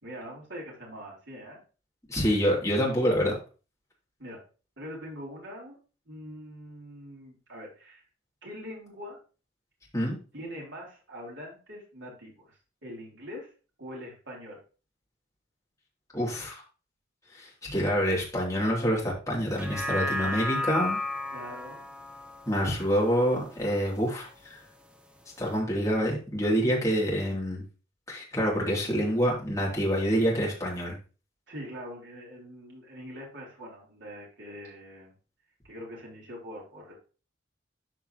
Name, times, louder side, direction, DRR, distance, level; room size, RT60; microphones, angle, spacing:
voice 1, 0.0-1.6 4.2-4.4 4.8-5.8 6.1-8.0 8.4-9.2 10.3-13.5 13.8-14.6 21.3-21.9 31.5-35.1 35.7-36.9, equal, 65° right, -3 dB, 4.0 m, -43 dB
voice 2, 2.1-3.3 9.9-10.2 16.1-16.6 17.3-21.0 22.5-24.6 25.4-27.6 28.1-31.0, equal, 15° left, -3 dB, 3.1 m, -27 dB
sound 1, 19.5-24.0 24.4-24.5, left 2 dB, 5° right, 0.6 m, -34 dB
13.0 x 4.8 x 3.1 m, 0.34 s
head